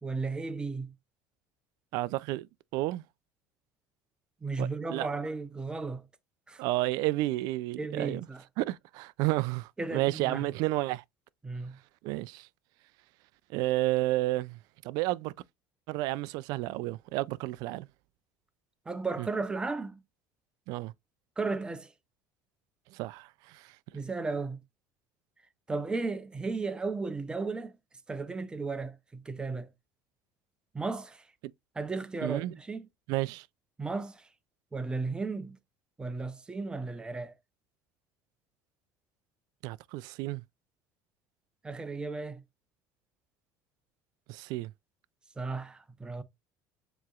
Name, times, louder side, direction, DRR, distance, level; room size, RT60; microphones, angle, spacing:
voice 1, 0.0-0.9 4.4-6.0 6.5-6.6 7.8-8.4 9.8-10.5 11.4-11.8 18.9-20.0 21.4-21.9 23.9-24.6 25.7-27.7 28.1-29.7 30.7-31.2 31.8-32.9 33.8-34.3 34.7-35.6 36.0-37.3 41.6-42.4 45.4-46.2, right 3 dB, 10° right, 0.6 m, -34 dB
voice 2, 1.9-3.0 4.6-5.1 6.6-8.3 8.6-11.0 12.0-12.5 13.5-14.6 14.8-15.3 15.9-17.9 19.2-19.3 20.7-20.9 22.9-23.7 32.2-32.5 33.1-33.5 39.6-40.4 44.3-44.7, right 18 dB, 70° right, 0.3 m, -31 dB
7.3 x 3.0 x 2.4 m
cardioid pair, 140°, 7 cm